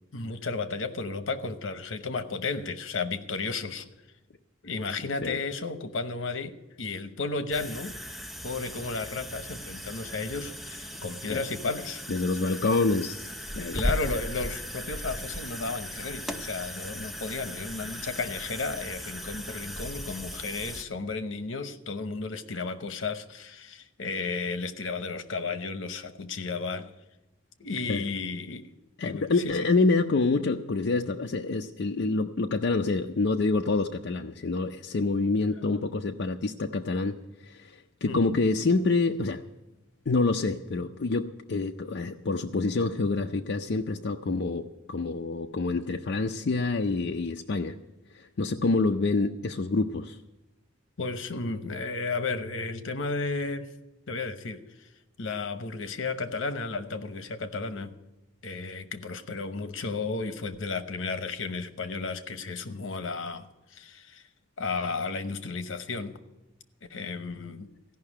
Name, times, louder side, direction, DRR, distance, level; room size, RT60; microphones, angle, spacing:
voice 1, 0.1-3.9 4.6-7.9 8.4-12.0 13.5-26.9 27.6-28.7 29.0-29.7 35.7-35.8 38.1-38.4 51.0-53.7 54.1-54.9 55.2-57.9 58.4-64.3 64.6-66.1 66.9-67.7, left 4 dB, 85° left, 0.9 m, -33 dB
sound 1, 7.5-20.8, equal, ahead, 0.5 m, -37 dB
voice 2, 12.1-13.3 13.5-13.8 27.9-28.0 29.0-37.2 37.4-39.4 40.1-47.8 48.1-50.2, left 3 dB, 60° left, 0.5 m, -27 dB
15.5 x 5.7 x 10.0 m
head